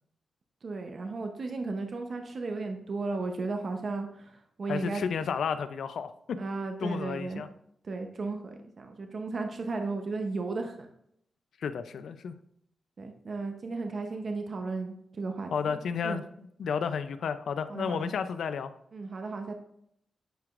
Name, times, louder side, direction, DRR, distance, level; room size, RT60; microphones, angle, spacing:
voice 1, 0.6-5.3 6.4-7.4 7.8-10.9 13.0-16.2 17.7-18.1 18.9-19.5, right 3 dB, 50° right, 4 dB, 0.8 m, -35 dB
voice 2, 4.7-6.4 6.8-7.5 11.6-12.3 15.5-16.2 16.6-18.7, left 6 dB, 75° left, 11 dB, 0.5 m, -32 dB
9.2 x 4.8 x 2.5 m, 0.72 s
cardioid pair, 95°, 0 cm